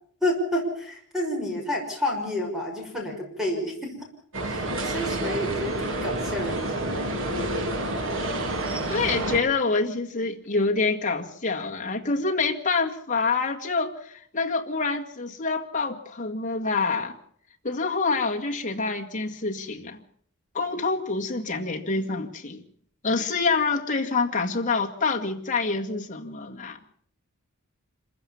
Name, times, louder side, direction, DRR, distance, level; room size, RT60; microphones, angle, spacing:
voice 1, 0.2-3.9 4.4-6.9, left 1 dB, ahead, 1 dB, 5.9 m, -29 dB
sound 1, 4.3-9.4, right 1 dB, 60° right, 3.1 m, -28 dB
voice 2, 8.9-17.2 17.6-20.0 20.5-22.6 23.0-26.8, left 4 dB, 35° left, 1 dB, 2.0 m, -26 dB
26.5 x 15.0 x 7.2 m, 0.62 s
head